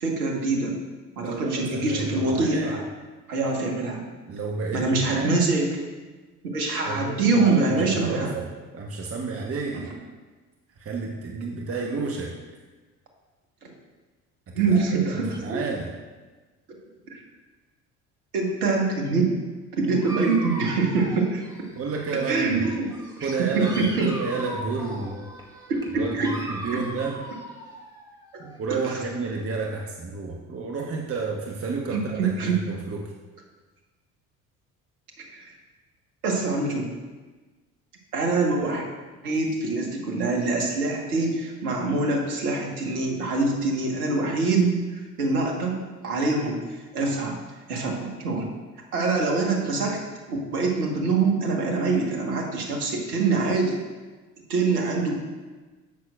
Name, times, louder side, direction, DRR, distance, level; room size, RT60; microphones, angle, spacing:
voice 1, 0.0-0.7 1.2-2.8 3.3-4.0 4.7-5.7 6.5-8.3 13.6-13.7 14.5-15.6 17.1-17.2 18.3-19.4 19.8-21.4 22.3-22.9 23.2-24.1 25.7-26.4 28.8-29.0 31.9-32.6 35.3-35.5 36.2-36.9 38.1-38.9 39.2-45.8 46.0-46.6 46.9-47.4 47.7-48.5 48.9-50.0 50.3-53.8 54.5-55.2, right 3 dB, 80° right, 0 dB, 1.6 m, -24 dB
voice 2, 1.2-2.8 4.3-5.4 6.9-8.5 8.7-9.9 10.8-12.4 14.6-16.0 21.7-22.7 23.2-25.2 26.0-27.2 28.4-33.1, right 4 dB, 30° right, 0 dB, 1.1 m, -31 dB
Dog, 19.9-22.3 22.6-28.6, right 1 dB, 10° right, 2.1 m, -39 dB
15.0 x 6.2 x 2.5 m, 1.3 s
figure-of-eight pair, 60°, 44 cm